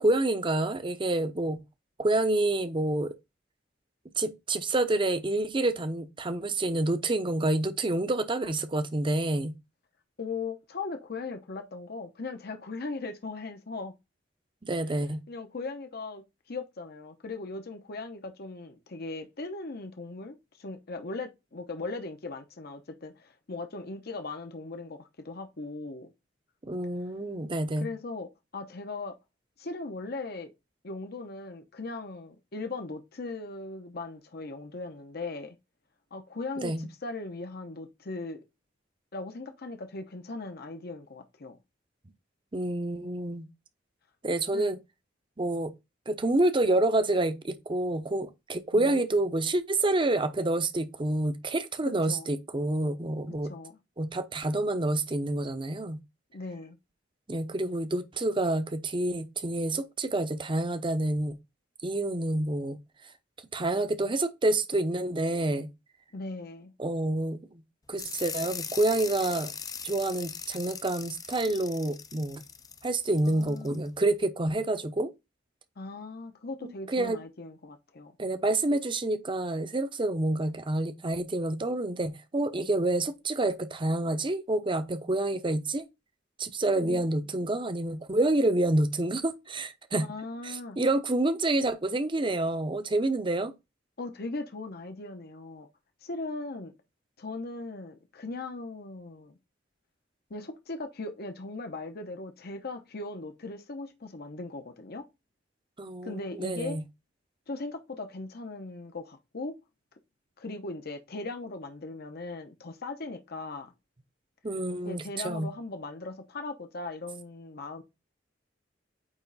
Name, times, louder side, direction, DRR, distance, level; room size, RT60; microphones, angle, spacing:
voice 1, 0.0-1.6 2.0-3.1 4.2-9.5 14.6-15.2 26.6-27.9 36.6-36.9 42.5-43.5 44.2-44.8 45.4-45.7 46.1-53.5 54.0-56.0 57.3-61.4 61.8-62.8 63.5-65.7 66.8-67.6 67.9-69.5 69.8-72.4 72.8-75.1 76.6-77.2 78.2-85.9 86.4-90.1 90.4-93.5 105.8-106.8 114.4-115.5, right 2 dB, 25° right, 0.7 m, -28 dB
voice 2, 10.2-13.9 14.9-15.0 15.3-16.2 16.5-26.1 27.8-28.3 28.5-29.1 29.6-30.5 30.8-35.6 36.1-38.4 39.1-41.6 44.5-44.8 48.8-49.0 52.1-52.3 53.4-53.8 56.3-56.8 66.1-66.7 73.2-73.8 75.8-78.2 86.8-87.0 90.0-90.8 94.0-95.7 96.0-96.7 97.2-99.4 100.3-105.0 106.0-106.8 107.5-109.5 110.4-113.7 114.8-117.8, left 3 dB, 55° left, 0.9 m, -38 dB
sound 1, 68.0-73.8, left 6 dB, 20° left, 0.5 m, -40 dB
8.9 x 3.2 x 4.0 m
head